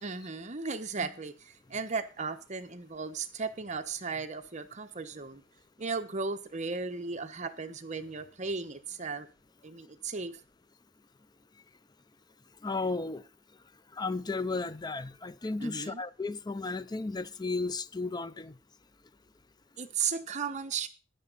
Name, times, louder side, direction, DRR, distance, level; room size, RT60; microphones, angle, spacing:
voice 1, 0.0-5.4 5.8-9.3 9.6-10.4 15.6-16.0 19.8-20.9, right 4 dB, 40° right, 1.0 m, -36 dB
voice 2, 12.6-13.2 13.9-18.5, left 3 dB, 20° left, 0.5 m, -34 dB
13.5 x 9.9 x 4.0 m
head